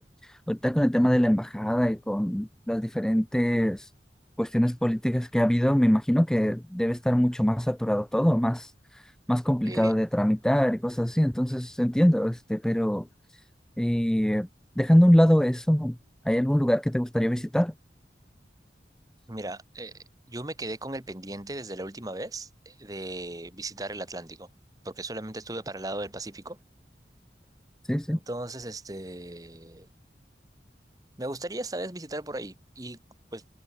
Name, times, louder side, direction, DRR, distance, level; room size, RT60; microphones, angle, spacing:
voice 1, 0.0-3.9 4.4-13.1 13.3-13.4 13.8-14.5 14.8-16.0 16.2-17.7 27.9-28.2, equal, 5° left, 0.4 m, -24 dB
voice 2, 19.3-19.9 20.3-24.5 24.8-26.6 28.1-29.9 31.2-33.0 33.3-33.4, right 2 dB, 20° right, 1.5 m, -37 dB
head